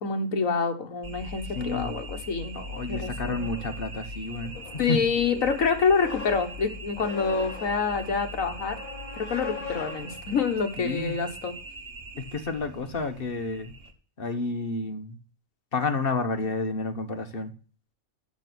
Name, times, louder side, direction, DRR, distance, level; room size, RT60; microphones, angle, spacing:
voice 1, 0.0-2.5 2.9-3.5 4.8-8.8 9.1-11.5, left 5 dB, 70° left, 6 dB, 1.7 m, -27 dB
sound 1, 1.0-13.9, equal, 45° right, 1.6 m, -41 dB
sound 2, 1.5-11.5, left 5 dB, 85° left, 1.5 m, -43 dB
voice 2, 1.5-1.9 2.5-5.0 10.8-11.2 12.1-13.7 14.2-15.2 15.7-17.5, left 3 dB, 45° left, 7 dB, 1.2 m, -30 dB
8.1 x 6.9 x 6.0 m, 0.40 s
omnidirectional pair, 1.5 m